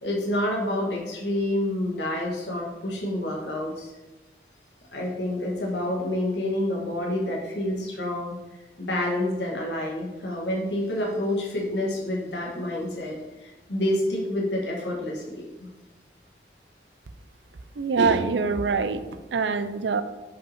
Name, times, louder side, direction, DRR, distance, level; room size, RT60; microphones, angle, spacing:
voice 1, 0.0-3.9 4.9-8.4 8.8-15.7, left 1 dB, 85° left, -1 dB, 1.6 m, -28 dB
voice 2, 17.8-19.0 19.3-20.0, right 4 dB, 90° right, 12 dB, 0.5 m, -24 dB
5.5 x 5.0 x 4.3 m, 1.1 s
head